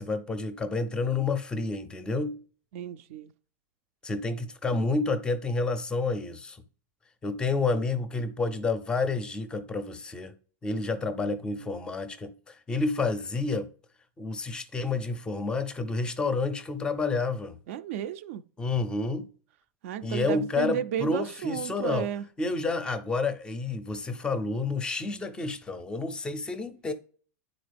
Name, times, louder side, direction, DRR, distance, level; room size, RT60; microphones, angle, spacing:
voice 1, 0.0-2.4 4.0-6.6 7.2-10.3 10.6-13.7 14.2-17.6 18.6-19.3 20.0-22.1 22.4-26.9, left 3 dB, 10° left, 0.5 m, -29 dB
voice 2, 2.7-3.3 11.2-11.7 17.7-18.4 19.8-22.2, right 10 dB, 60° right, 0.4 m, -33 dB
9.3 x 3.9 x 3.4 m
supercardioid pair, 155°, 8 cm